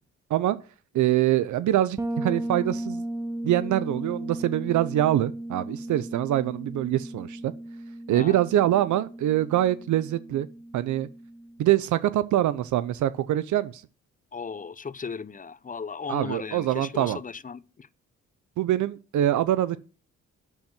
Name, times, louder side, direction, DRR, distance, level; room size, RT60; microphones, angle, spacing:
voice 1, 0.9-3.0 3.4-7.5 8.1-10.5 10.7-11.1 11.6-13.8 16.1-17.2 18.6-19.8, right 13 dB, 75° right, 0.6 m, -24 dB
Bass guitar, 2.0-11.6, right 1 dB, 10° right, 0.8 m, -36 dB
voice 2, 14.3-17.9, left 5 dB, 25° left, 0.7 m, -36 dB
11.5 x 4.5 x 7.8 m
supercardioid pair, 55°, 30 cm